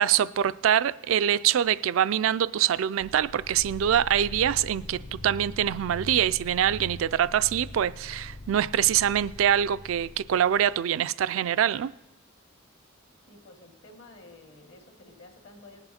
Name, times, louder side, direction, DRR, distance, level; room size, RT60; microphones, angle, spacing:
voice 1, 0.0-11.9, right 10 dB, 70° right, 0.3 m, -24 dB
sound 1, 3.0-10.8, left 2 dB, 45° left, 0.6 m, -42 dB
voice 2, 13.3-15.8, left 2 dB, 65° left, 1.8 m, -51 dB
19.5 x 8.0 x 4.2 m
head